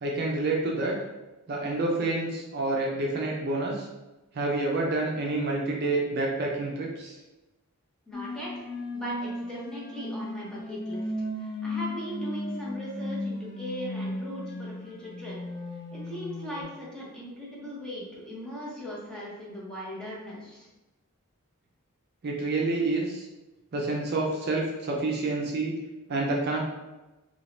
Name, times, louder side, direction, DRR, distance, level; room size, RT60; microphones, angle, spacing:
voice 1, 0.0-0.9 1.5-3.9 4.3-7.1 22.2-23.2 23.7-25.7 26.1-26.6, right 2 dB, 50° right, -1 dB, 0.5 m, -28 dB
sound 1, 8.1-16.6, left 1 dB, 25° left, 0.4 m, -35 dB
voice 2, 8.1-15.4 15.9-20.7, equal, 5° left, -6 dB, 0.8 m, -39 dB
2.8 x 2.7 x 3.1 m, 1.1 s
head